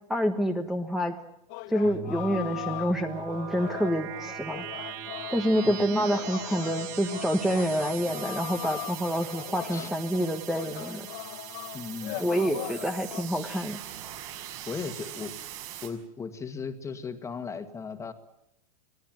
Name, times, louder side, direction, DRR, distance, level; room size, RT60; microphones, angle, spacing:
voice 1, 0.1-1.1 1.7-4.9 5.3-11.1 12.2-13.8, equal, ahead, 5 dB, 1.4 m, -27 dB
sound 1, 1.5-13.2, left 19 dB, 45° left, 1.1 m, -40 dB
sound 2, 1.8-15.9, right 9 dB, 50° right, 6.1 m, -40 dB
voice 2, 11.7-12.2 14.7-15.3 15.8-18.1, left 5 dB, 15° left, 8 dB, 2.0 m, -36 dB
25.0 x 18.0 x 9.2 m, 0.81 s
supercardioid pair, 135°, 20 cm